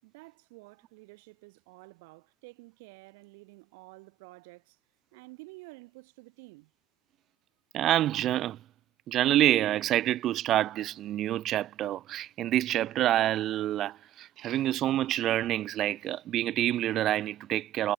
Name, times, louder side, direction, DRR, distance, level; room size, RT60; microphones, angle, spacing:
voice 1, 0.0-4.8 5.1-6.7, right 26 dB, 55° right, 7.1 m, -51 dB
voice 2, 7.7-8.6 9.1-17.9, right 13 dB, 35° right, 1.6 m, -27 dB
figure-of-eight pair, 95°, 0 cm